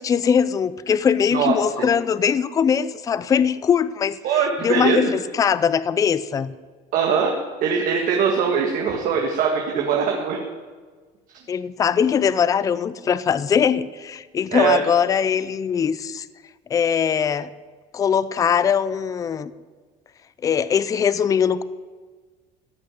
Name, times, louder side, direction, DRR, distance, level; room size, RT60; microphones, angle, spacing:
voice 1, 0.0-4.2 4.6-6.5 11.5-16.3 16.7-17.5 17.9-19.5 20.4-21.6, left 7 dB, 20° left, 16 dB, 0.4 m, -21 dB
voice 2, 1.3-1.9 4.2-5.1 6.9-10.4 14.5-14.8, right 6 dB, 55° right, 1 dB, 1.8 m, -22 dB
15.5 x 6.3 x 10.0 m, 1.4 s
cardioid pair, 145°, 16 cm